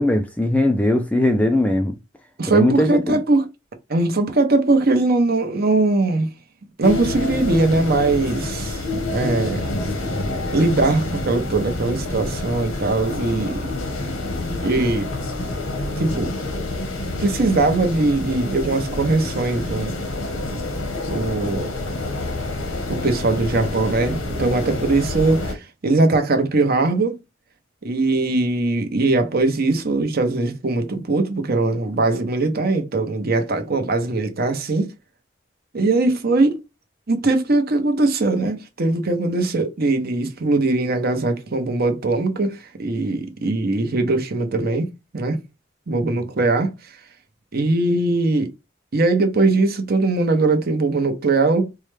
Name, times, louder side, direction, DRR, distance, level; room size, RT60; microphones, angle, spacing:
voice 1, 0.0-1.9 2.5-3.2, left 1 dB, 5° left, 0.3 m, -19 dB
voice 2, 2.4-3.5 3.9-6.3 6.8-9.6 10.5-13.7 14.6-15.1 16.0-16.3 17.2-19.9 21.1-21.7 22.9-25.6 25.8-27.2 27.8-34.9 35.7-36.6 37.1-44.9 45.1-45.4 45.9-46.7 47.5-48.5 48.9-51.7, right 2 dB, 50° right, 0.8 m, -20 dB
sound 1, 6.8-25.5, left 2 dB, 90° left, 1.1 m, -27 dB
4.6 x 2.2 x 3.2 m
head